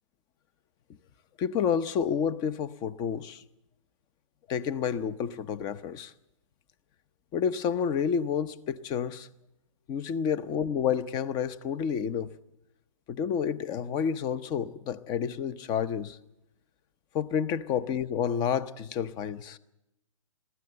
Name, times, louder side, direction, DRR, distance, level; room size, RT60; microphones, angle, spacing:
voice 1, 1.4-3.4 4.5-6.1 7.3-9.3 9.9-12.3 13.1-16.2 17.1-19.6, left 7 dB, 25° left, 0.8 m, -29 dB
22.0 x 15.5 x 7.8 m
hypercardioid pair, 135°, 17 cm